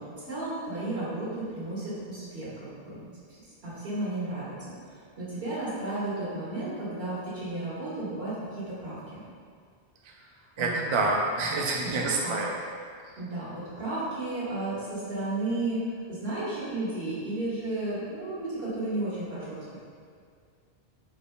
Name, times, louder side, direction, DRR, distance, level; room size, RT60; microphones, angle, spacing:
voice 1, 0.0-4.5 5.2-9.2 10.6-11.1 11.8-12.4 13.2-15.8 16.1-19.8, right 2 dB, 75° right, -10 dB, 1.9 m, -33 dB
voice 2, 10.6-12.6, right 3 dB, 45° right, -1 dB, 0.4 m, -27 dB
5.1 x 4.4 x 2.2 m, 2.1 s
omnidirectional pair, 1.1 m